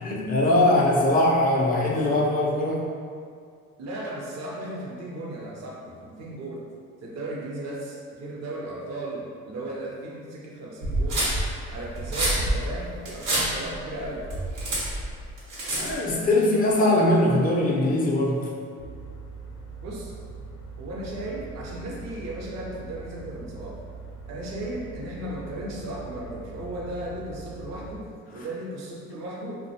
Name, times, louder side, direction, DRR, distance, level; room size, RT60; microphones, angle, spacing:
voice 1, 0.0-2.9 15.7-18.5, left 1 dB, 30° left, -3 dB, 0.5 m, -21 dB
voice 2, 3.8-6.6 7.0-11.3 11.7-14.3 19.8-20.1 20.8-23.8 24.3-29.7, right 1 dB, 60° right, -3 dB, 0.6 m, -36 dB
sound 1, 10.8-16.1, right 1 dB, 85° right, 0.9 m, -27 dB
sound 2, 18.8-28.0, right 4 dB, 85° left, 0.5 m, -42 dB
2.4 x 2.1 x 2.7 m, 2.2 s
cardioid pair, 90°, 30 cm